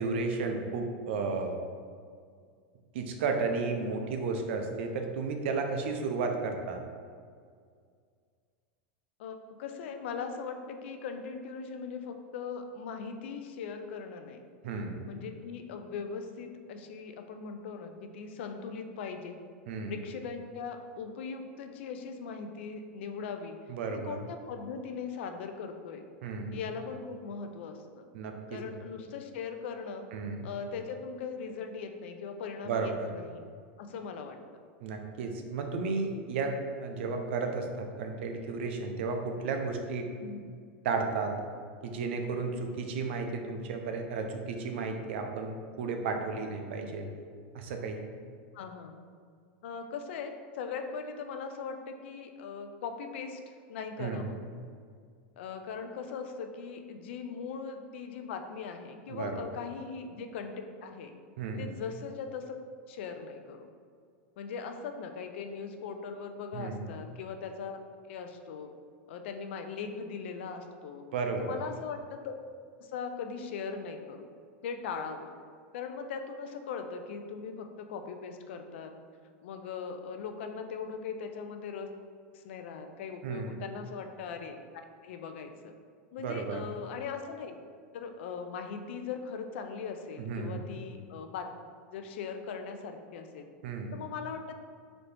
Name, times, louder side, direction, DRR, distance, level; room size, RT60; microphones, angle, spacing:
voice 1, 0.0-1.6 2.9-6.8 14.6-15.1 19.7-20.0 23.7-24.2 26.2-26.6 28.1-28.6 30.1-30.5 32.6-33.1 34.8-40.1 40.8-41.3 41.8-47.1 47.5-48.0 54.0-54.3 59.1-59.4 61.4-61.7 66.5-66.9 71.1-71.6 83.2-83.6 86.2-86.6 90.2-90.7 93.6-93.9, right 4 dB, 75° right, 4 dB, 0.5 m, -33 dB
voice 2, 9.2-14.4 15.1-19.4 19.9-23.6 23.9-26.0 26.5-28.1 28.5-30.1 30.4-33.4 33.8-34.4 40.2-40.5 48.5-49.0 49.6-53.4 53.7-54.4 55.4-61.1 61.6-62.5 62.9-63.7 64.4-67.8 68.1-68.7 69.1-71.0 71.4-72.3 72.8-74.3 74.6-75.3 75.7-78.9 79.4-81.9 82.3-85.7 86.1-87.5 87.9-91.5 91.9-93.5 93.9-94.6, left 5 dB, 75° left, 6 dB, 0.4 m, -40 dB
4.0 x 2.8 x 3.3 m, 2.1 s
supercardioid pair, 145°, 6 cm